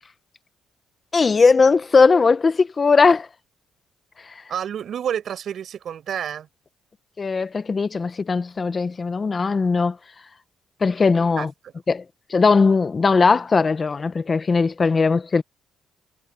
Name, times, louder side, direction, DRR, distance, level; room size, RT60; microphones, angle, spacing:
voice 1, 1.1-3.3 4.2-4.3 7.2-10.0 10.8-11.5 11.9-12.0 12.3-15.4, left 4 dB, 35° left, 1.0 m, -18 dB
voice 2, 4.5-6.5 11.4-11.7, right 9 dB, 65° right, 5.5 m, -29 dB
cardioid pair, 90°, 0 cm